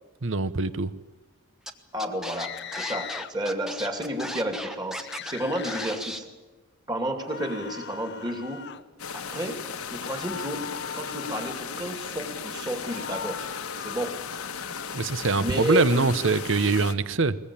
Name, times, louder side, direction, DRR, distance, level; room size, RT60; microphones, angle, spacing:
voice 1, 0.2-0.9 14.9-17.4, right 3 dB, 60° right, 16 dB, 0.9 m, -23 dB
Scratching (performance technique), 1.7-1.8 2.0-5.3 5.6-6.2, equal, ahead, 1.0 m, -36 dB
voice 2, 1.9-6.3 6.9-8.7 9.1-9.6 9.9-13.5 13.8-14.2 15.4-16.1, right 1 dB, 20° right, 5 dB, 2.7 m, -31 dB
sound 1, 2.3-3.3 5.0-6.0 7.2-8.8 10.0-11.7 12.8-15.0, left 8 dB, 50° left, 0.7 m, -40 dB
sound 2, 9.0-16.9, left 6 dB, 85° left, 1.5 m, -36 dB
21.0 x 21.0 x 8.7 m, 1.2 s
head